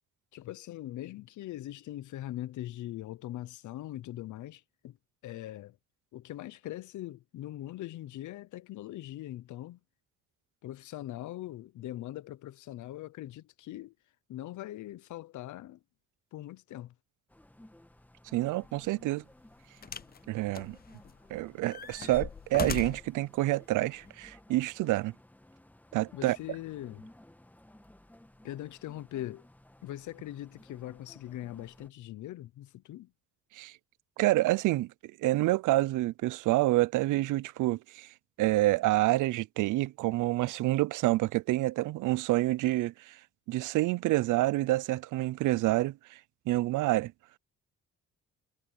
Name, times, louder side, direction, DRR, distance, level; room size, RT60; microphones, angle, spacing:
voice 1, 0.3-5.0 5.2-5.8 6.1-9.8 10.6-13.9 14.3-15.8 16.3-16.9 26.1-27.1 28.4-29.4 29.8-33.1, left 14 dB, 75° left, 0.9 m, -41 dB
sound 1, 17.3-31.9, left 1 dB, 5° left, 1.8 m, -57 dB
voice 2, 18.3-19.2 20.3-20.8 21.3-25.1 25.9-26.4 33.5-33.7 34.2-34.9 35.2-38.1 38.4-43.2 43.5-46.2 46.5-47.1, right 17 dB, 80° right, 0.6 m, -28 dB
sound 2, 18.6-18.8 19.8-20.2 20.5-21.3 21.7-23.1 24.0-24.1, left 7 dB, 30° left, 0.7 m, -38 dB
cardioid pair, 90°, 30 cm